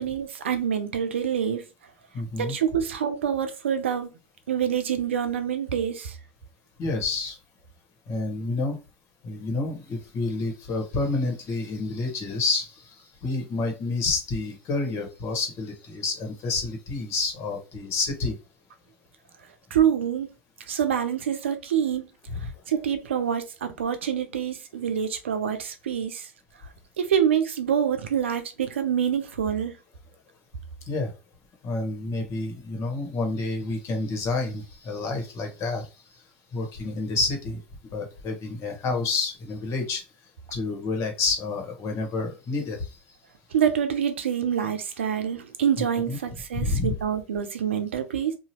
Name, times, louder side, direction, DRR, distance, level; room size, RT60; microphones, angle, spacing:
voice 1, 0.0-1.6 2.4-4.1 4.5-6.2 19.7-20.3 20.7-22.1 22.7-26.3 27.0-29.7 43.5-48.3, right 8 dB, 85° right, 0.6 m, -26 dB
voice 2, 2.1-2.5 6.8-7.4 8.1-8.8 9.2-12.9 13.2-18.4 30.9-31.1 31.6-35.9 36.5-37.6 37.9-40.0 40.5-42.8 46.1-46.2 46.5-46.9, left 3 dB, 50° left, 1.3 m, -29 dB
2.8 x 2.4 x 2.9 m
hypercardioid pair, 85°, 6 cm